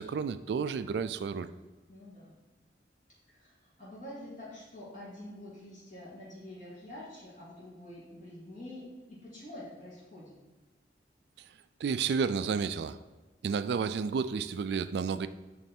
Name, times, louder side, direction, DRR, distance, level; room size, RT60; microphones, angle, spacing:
voice 1, 0.0-1.5 11.8-13.0 13.4-15.3, right 5 dB, 70° right, 13 dB, 0.3 m, -31 dB
voice 2, 1.9-2.3 3.3-8.8 9.1-10.3, left 1 dB, 45° left, -8 dB, 2.2 m, -47 dB
9.1 x 3.3 x 4.3 m, 1.3 s
head